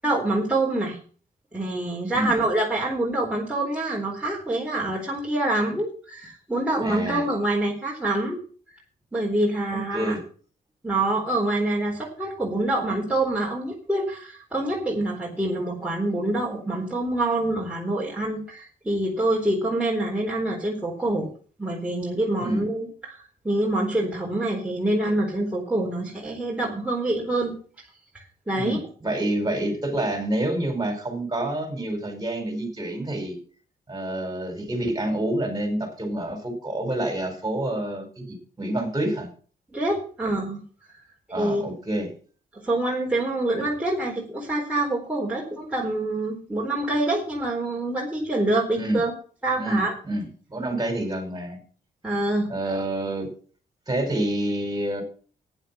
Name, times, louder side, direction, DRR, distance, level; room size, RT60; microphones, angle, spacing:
voice 1, 0.0-1.0 1.5-8.4 9.1-10.2 10.8-21.3 21.6-27.5 28.1-28.8 39.7-40.6 41.4-41.6 42.5-49.1 49.4-49.9 52.0-52.5, right 2 dB, 10° right, -3 dB, 4.1 m, -26 dB
voice 2, 6.8-7.2 9.9-10.2 22.4-22.7 28.6-33.4 33.9-39.3 41.3-42.1 48.8-49.0 49.6-51.6 52.5-53.3 53.9-55.0, right 1 dB, 25° right, 5 dB, 5.1 m, -28 dB
11.5 x 10.0 x 6.0 m, 0.42 s
cardioid pair, 85°, 16 cm